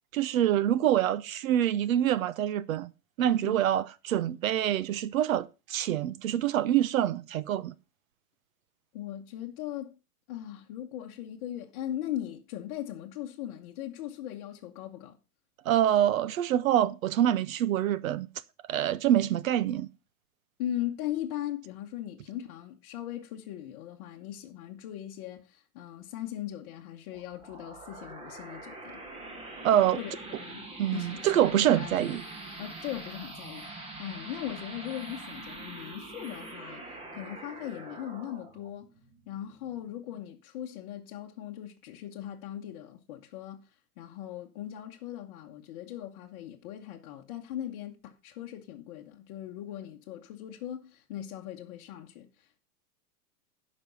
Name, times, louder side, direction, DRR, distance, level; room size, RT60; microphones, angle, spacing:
voice 1, 0.1-2.9 3.2-7.7 15.6-18.3 18.7-19.9 29.6-30.0 30.8-32.2, right 11 dB, 60° right, 0.8 m, -26 dB
voice 2, 8.9-9.9 10.3-15.2 20.6-29.0 29.7-30.6 30.9-32.2 32.6-36.8 37.1-38.9 39.3-43.6 44.0-52.6, left 12 dB, 35° left, 1.1 m, -39 dB
sound 1, 27.1-40.2, right 2 dB, 15° right, 1.3 m, -44 dB
11.5 x 5.4 x 5.5 m
hypercardioid pair, 150°, 46 cm